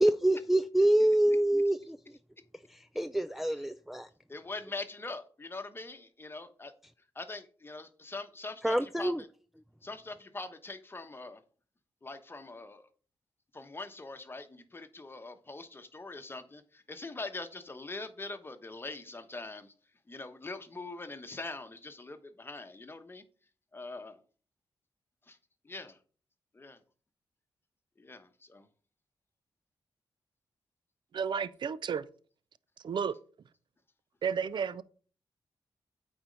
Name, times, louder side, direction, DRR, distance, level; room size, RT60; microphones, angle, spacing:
voice 1, 0.0-2.0 2.7-4.1 8.6-9.2, right 1 dB, ahead, 0.3 m, -26 dB
voice 2, 4.3-6.7 7.1-9.3 9.8-11.4 12.0-12.9 13.5-19.7 20.1-23.2 23.7-24.2 25.3-25.4 25.6-26.0 26.5-26.8 28.0-28.7, left 3 dB, 25° left, 1.1 m, -43 dB
voice 3, 31.1-32.1 32.8-33.2 34.2-34.8, right 6 dB, 65° right, 0.5 m, -32 dB
8.8 x 4.3 x 5.1 m
cardioid pair, 80°, 9 cm